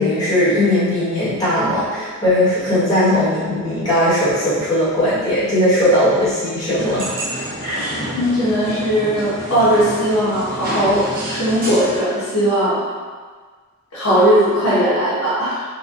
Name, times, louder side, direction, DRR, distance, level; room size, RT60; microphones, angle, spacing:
voice 1, 0.0-7.2 7.6-7.8, left 1 dB, 15° left, -13 dB, 1.3 m, -18 dB
sound 1, 6.8-12.0, right 1 dB, 40° right, 0.6 m, -28 dB
voice 2, 8.1-12.8 13.9-15.6, equal, 70° left, -10 dB, 1.0 m, -18 dB
4.3 x 2.3 x 2.5 m, 1.5 s
head